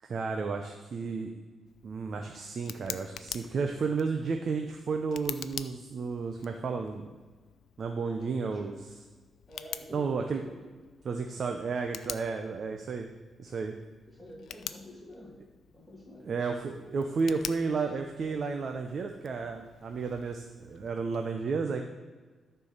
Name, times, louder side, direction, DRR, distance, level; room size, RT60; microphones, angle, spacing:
voice 1, 0.0-1.3 1.8-7.0 7.8-9.0 9.9-10.4 11.0-13.1 13.4-13.7 16.3-21.9, right 4 dB, 50° right, 5 dB, 0.7 m, -32 dB
Tick, 1.7-21.3, left 9 dB, 75° left, 0.4 m, -47 dB
voice 2, 8.2-8.6 9.5-10.7 14.1-15.4 15.7-16.3 17.0-17.2, left 1 dB, ahead, -3 dB, 2.6 m, -48 dB
13.0 x 4.6 x 6.6 m, 1.4 s
cardioid pair, 130°, 0 cm